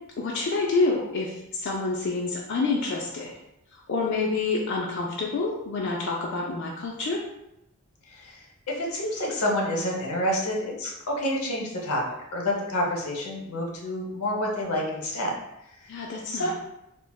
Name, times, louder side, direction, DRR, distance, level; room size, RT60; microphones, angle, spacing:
voice 1, 0.2-3.3 3.7-7.2 15.9-16.5, left 3 dB, 55° left, -2 dB, 0.4 m, -28 dB
voice 2, 8.1-8.4 8.7-12.0 12.3-15.3 16.2-16.5, left 1 dB, 90° left, -1 dB, 0.7 m, -28 dB
3.7 x 2.1 x 2.2 m, 0.86 s
head